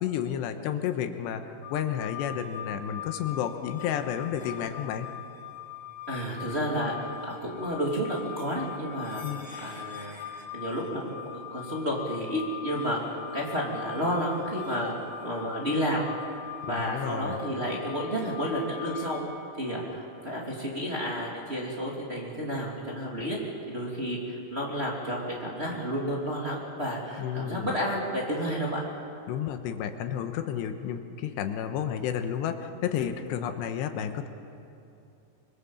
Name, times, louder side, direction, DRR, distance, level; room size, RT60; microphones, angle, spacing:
voice 1, 0.0-5.1 9.2-9.5 16.6-17.4 27.2-27.7 29.3-34.3, left 9 dB, 85° left, 7 dB, 3.3 m, -31 dB
sound 1, 1.6-19.2, left 9 dB, 50° left, 4.8 m, -41 dB
voice 2, 6.1-9.2 9.6-10.1 10.5-16.1 16.6-19.2 19.6-23.4 23.7-28.8, equal, 15° right, -4 dB, 2.8 m, -31 dB
25.0 x 22.5 x 7.3 m, 2.7 s
omnidirectional pair, 4.9 m